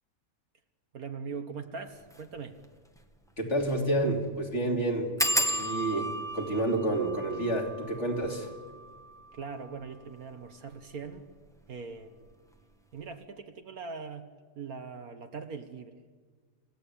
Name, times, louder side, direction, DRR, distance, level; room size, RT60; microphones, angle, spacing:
voice 1, 0.9-2.6 9.3-11.3 11.7-12.2 12.9-14.3 14.5-16.0, right 5 dB, 60° right, 7 dB, 1.7 m, -41 dB
sound 1, 2.0-2.2 2.6-2.7 3.0-3.1 3.6-3.9 4.1-4.2 5.2-10.5 11.1-11.7 12.0-12.3 12.6-12.7, equal, ahead, 1.3 m, -34 dB
voice 2, 3.4-8.5, right 1 dB, 40° left, 0 dB, 3.4 m, -29 dB
28.0 x 16.0 x 8.5 m, 1.5 s
omnidirectional pair, 1.8 m